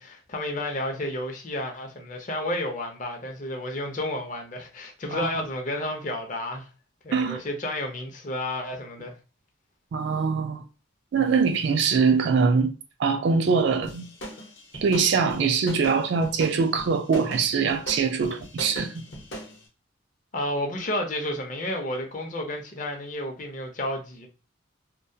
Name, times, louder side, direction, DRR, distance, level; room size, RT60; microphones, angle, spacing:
voice 1, 0.0-6.7 7.0-9.1 20.3-24.3, left 1 dB, 40° left, 0.5 m, -31 dB
voice 2, 7.1-7.4 9.9-10.6 11.1-12.7 13.0-14.1 14.7-19.0, right 5 dB, 60° right, 0.3 m, -23 dB
sound 1, 13.8-19.6, right 1 dB, 65° left, 0.8 m, -39 dB
2.2 x 2.1 x 2.7 m
head